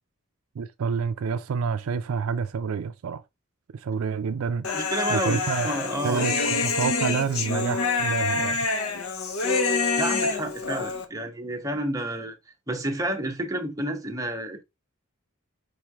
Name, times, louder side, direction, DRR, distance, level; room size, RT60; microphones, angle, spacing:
voice 1, 0.6-3.2 3.7-4.7 5.1-5.7 6.0-8.6, right 6 dB, 75° right, 0.4 m, -28 dB
Human voice, 4.6-11.1, left 4 dB, 80° left, 0.8 m, -26 dB
voice 2, 4.7-6.5 10.0-12.4 12.7-14.6, right 1 dB, 15° right, 0.9 m, -30 dB
4.8 x 3.1 x 3.4 m
head